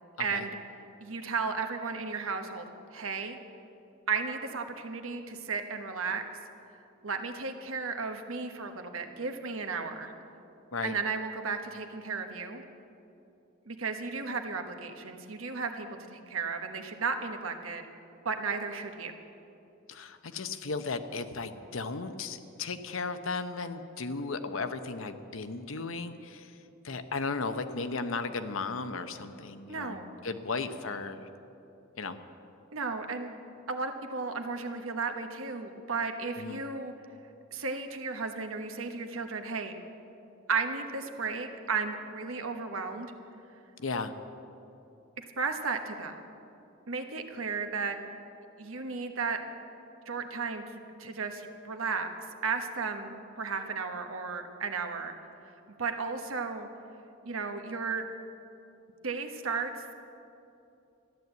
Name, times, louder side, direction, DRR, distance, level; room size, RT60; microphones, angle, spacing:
voice 1, 0.2-0.5 1.0-2.7 2.9-3.4 4.1-6.2 7.0-10.1 10.8-12.6 13.7-17.8 18.2-19.1 29.7-30.1 32.7-33.3 33.7-36.9 37.5-39.7 40.5-43.1 45.2-46.2 46.9-48.0 48.6-49.4 50.1-50.6 51.0-52.1 52.4-55.2 55.8-56.7 57.2-58.0 59.0-59.9, right 4 dB, 85° right, 6 dB, 1.2 m, -34 dB
voice 2, 19.9-26.5 26.8-30.0 30.2-31.2 32.0-32.2 36.4-36.6 43.8-44.1, left 4 dB, 70° left, 9 dB, 0.8 m, -35 dB
13.5 x 11.0 x 8.1 m, 2.8 s
head